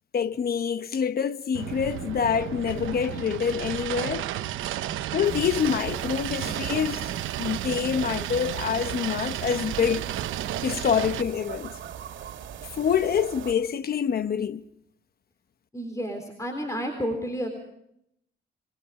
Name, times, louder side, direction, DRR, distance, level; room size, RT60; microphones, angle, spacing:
voice 1, 0.1-4.3 5.1-7.0 7.4-10.0 10.6-11.7 12.7-14.6, left 7 dB, 50° left, 1.1 m, -26 dB
sound 1, 1.5-11.2, right 13 dB, 85° right, 0.9 m, -33 dB
sound 2, 5.2-13.5, right 9 dB, 70° right, 2.6 m, -39 dB
voice 2, 15.7-17.5, equal, 15° left, 3.9 m, -31 dB
27.0 x 22.0 x 4.9 m
cardioid pair, 90°, 20 cm